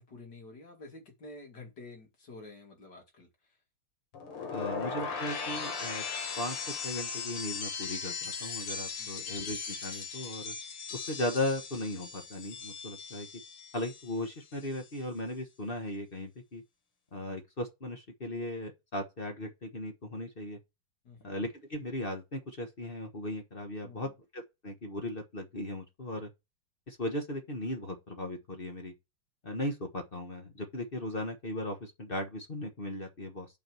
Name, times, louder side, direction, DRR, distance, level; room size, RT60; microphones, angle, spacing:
voice 1, 0.0-3.6 9.0-9.3 21.0-21.3 23.8-24.1, left 2 dB, 50° left, 2.9 m, -50 dB
sound 1, 4.1-14.2 14.5-15.0, left 5 dB, 90° left, 2.6 m, -38 dB
voice 2, 4.5-6.0 6.4-10.5 10.9-13.3 13.7-16.6 17.1-20.6 21.2-26.3 26.9-28.9 29.4-33.5, left 1 dB, 30° left, 1.2 m, -37 dB
8.6 x 4.8 x 6.2 m
omnidirectional pair, 2.3 m